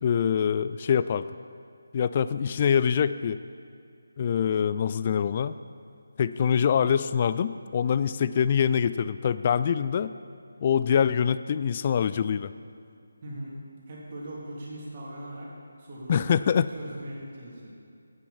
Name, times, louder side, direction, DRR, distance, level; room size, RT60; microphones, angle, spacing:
voice 1, 0.0-1.3 1.9-3.4 4.2-5.5 6.2-10.1 10.6-12.5 16.1-16.7, left 7 dB, 30° left, 14 dB, 0.3 m, -24 dB
voice 2, 13.2-13.6 13.9-15.5 15.8-16.4 16.7-17.7, right 1 dB, 35° right, -5 dB, 2.9 m, -40 dB
9.9 x 9.1 x 5.8 m, 2.4 s
figure-of-eight pair, 155°, 0 cm